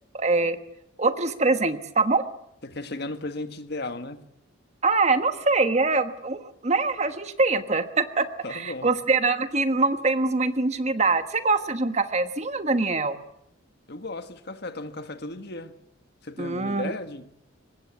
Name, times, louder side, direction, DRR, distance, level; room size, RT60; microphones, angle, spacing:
voice 1, 0.1-0.6 1.0-2.2 4.8-13.2 16.4-16.9, right 3 dB, 35° right, 1.3 m, -24 dB
voice 2, 2.6-4.3 8.4-8.9 13.9-15.8 16.2-17.3, left 2 dB, 55° left, 1.6 m, -35 dB
24.0 x 20.5 x 8.4 m
head